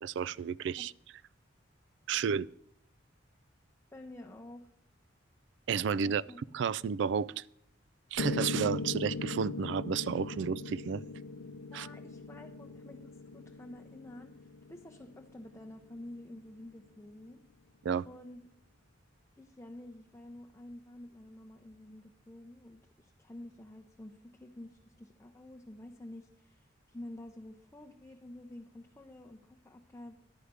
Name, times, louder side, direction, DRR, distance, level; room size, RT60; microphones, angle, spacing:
voice 1, 0.0-0.9 2.1-2.5 5.7-6.2 6.5-7.4 8.1-11.0 11.7-11.9 17.8-18.0, right 7 dB, 60° right, 21 dB, 0.3 m, -32 dB
voice 2, 3.9-4.7 6.0-6.4 11.7-17.4 18.1-18.4 19.4-30.1, left 1 dB, 15° left, 1 dB, 0.6 m, -49 dB
Piano, 8.2-16.2, left 3 dB, 80° left, 0.6 m, -40 dB
11.0 x 4.9 x 8.1 m, 0.77 s
head